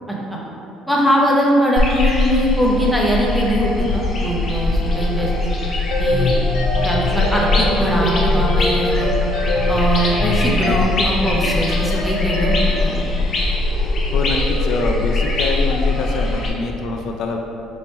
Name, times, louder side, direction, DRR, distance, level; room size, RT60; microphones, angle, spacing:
voice 1, 0.1-0.4 0.9-5.5 6.0-6.3 6.8-9.1 9.7-13.0, equal, ahead, -4 dB, 0.7 m, -20 dB
sound 1, 1.8-16.5, left 2 dB, 35° left, 0.8 m, -21 dB
Wind instrument woodwind instrument, 4.0-8.3, equal, 65° right, 1.1 m, -42 dB
sound 2, 5.9-12.8, left 1 dB, 75° left, 0.7 m, -24 dB
voice 2, 13.8-17.4, left 3 dB, 55° left, 2 dB, 0.3 m, -25 dB
5.2 x 2.9 x 3.4 m, 2.9 s
cardioid pair, 140°, 0 cm